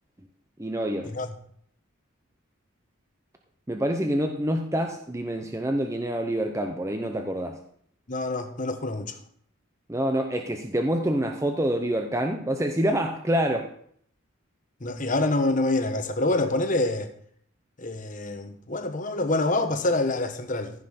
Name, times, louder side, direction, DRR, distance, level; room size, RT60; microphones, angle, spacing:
voice 1, 0.6-1.1 3.7-7.6 9.9-13.7, right 1 dB, 15° right, 0.6 m, -26 dB
voice 2, 8.1-9.2 14.8-17.1 17.8-20.7, left 2 dB, 35° left, 1.1 m, -26 dB
14.5 x 5.4 x 5.5 m
head